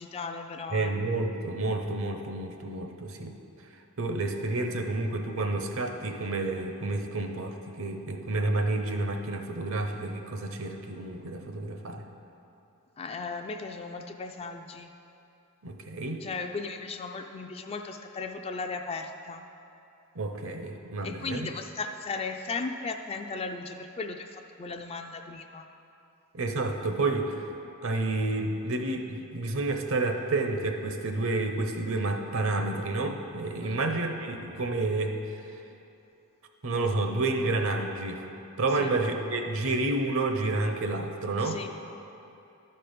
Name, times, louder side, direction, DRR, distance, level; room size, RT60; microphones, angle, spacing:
voice 1, 0.0-1.0 13.0-14.9 16.2-19.4 21.0-25.7 33.6-33.8 38.8-38.9 41.4-41.7, left 4 dB, 25° left, 6 dB, 0.3 m, -36 dB
voice 2, 0.7-3.4 4.0-12.1 15.6-16.2 20.1-21.5 26.3-27.6 27.8-35.1 36.6-38.2 38.6-41.6, right 2 dB, 65° right, 5 dB, 0.7 m, -30 dB
12.0 x 4.5 x 5.1 m, 2.8 s
head